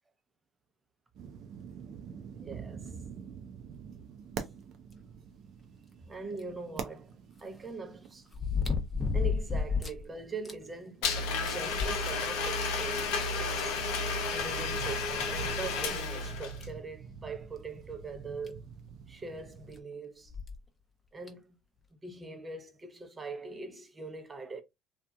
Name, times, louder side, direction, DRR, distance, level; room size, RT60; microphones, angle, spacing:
sound 1, 1.1-19.8, right 7 dB, 60° right, 0.6 m, -48 dB
voice 1, 2.4-3.0 6.0-8.3 9.1-11.1 11.5-13.8 14.3-18.6 19.1-20.3 21.1-21.6 21.9-24.6, right 4 dB, 25° right, 0.7 m, -42 dB
sound 2, 6.4-6.5 8.3-10.0 10.4-10.5 11.0-11.1 11.5-12.6 13.6-13.7 15.1-15.2 15.8-15.9 16.6-16.8 18.1-18.2 18.5-18.6 20.3-20.6 21.3-21.4, left 5 dB, 20° left, 0.7 m, -31 dB
Domestic sounds home sounds, 11.0-16.7, left 4 dB, 80° left, 0.7 m, -32 dB
2.8 x 2.4 x 2.2 m
hypercardioid pair, 75°, 0 cm